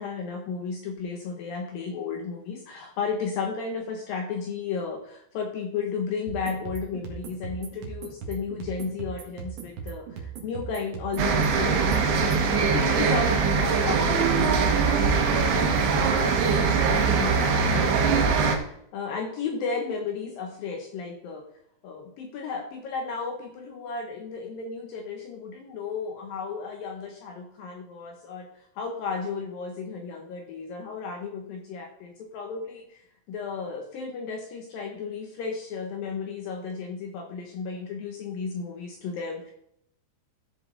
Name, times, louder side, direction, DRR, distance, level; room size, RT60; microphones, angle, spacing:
voice 1, 0.0-21.5 21.8-39.5, left 5 dB, 80° left, 2 dB, 2.1 m, -34 dB
sound 1, 6.3-12.5, right 7 dB, 65° right, 1.5 m, -39 dB
sound 2, 11.2-18.6, right 5 dB, 80° right, 3.5 m, -22 dB
15.0 x 5.3 x 3.8 m, 0.72 s
omnidirectional pair, 5.3 m